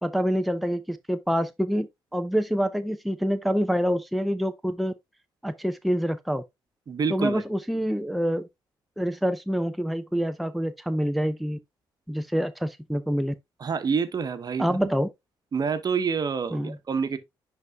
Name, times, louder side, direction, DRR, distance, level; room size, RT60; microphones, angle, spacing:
voice 1, 0.0-4.9 5.4-6.4 7.1-8.5 9.0-11.6 12.1-13.3 14.6-15.1 16.5-16.8, equal, ahead, 0.6 m, -26 dB
voice 2, 6.9-7.4 13.6-14.9 15.5-17.2, right 6 dB, 45° right, 1.1 m, -27 dB
10.5 x 4.0 x 2.3 m
supercardioid pair, 65°, 9 cm